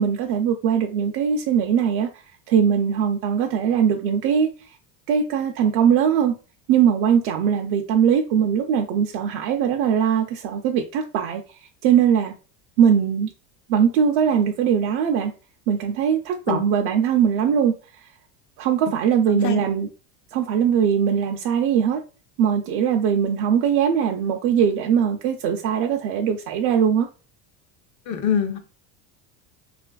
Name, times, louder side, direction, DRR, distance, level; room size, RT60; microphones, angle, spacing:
voice 1, 0.0-2.1 2.5-4.5 5.1-6.3 6.7-11.4 11.8-12.3 12.8-13.3 13.7-15.3 15.7-17.7 18.6-19.9 20.3-22.0 22.4-27.1, right 8 dB, 60° right, 0.5 m, -20 dB
voice 2, 19.3-19.6 28.1-28.6, left 8 dB, 45° left, 0.6 m, -24 dB
2.9 x 2.4 x 2.2 m
supercardioid pair, 125°, 44 cm